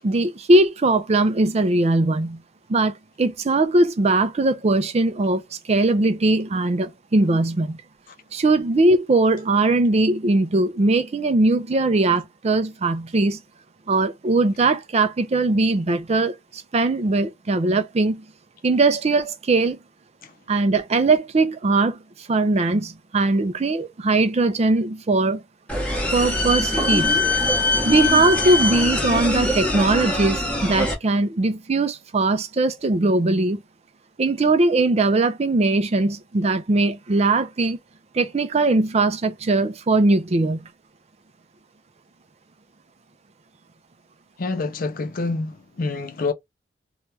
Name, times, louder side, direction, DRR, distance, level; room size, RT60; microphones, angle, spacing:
voice 1, 0.0-2.4 2.7-5.4 5.7-7.8 8.3-13.4 13.9-18.2 18.6-19.8 20.5-22.0 22.3-25.4 26.1-27.2 27.8-33.6 34.2-37.8 38.1-40.7, right 2 dB, 35° right, 0.5 m, -20 dB
sound 1, 25.7-30.9, left 2 dB, 5° left, 0.9 m, -22 dB
voice 2, 44.4-46.3, left 3 dB, 50° left, 0.4 m, -27 dB
2.8 x 2.3 x 3.1 m
head